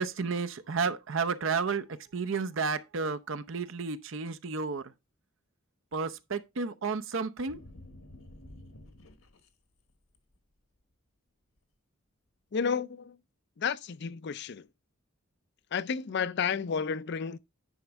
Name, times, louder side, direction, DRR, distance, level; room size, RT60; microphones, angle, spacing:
voice 1, 0.0-1.8 2.1-4.9 5.9-7.6, right 5 dB, 65° right, 0.7 m, -32 dB
sound 1, 7.5-9.5 9.9-10.4, left 1 dB, 90° left, 1.3 m, -50 dB
voice 2, 12.5-13.2 13.6-14.6 15.7-17.4, left 6 dB, 55° left, 0.5 m, -31 dB
9.9 x 5.1 x 3.5 m
head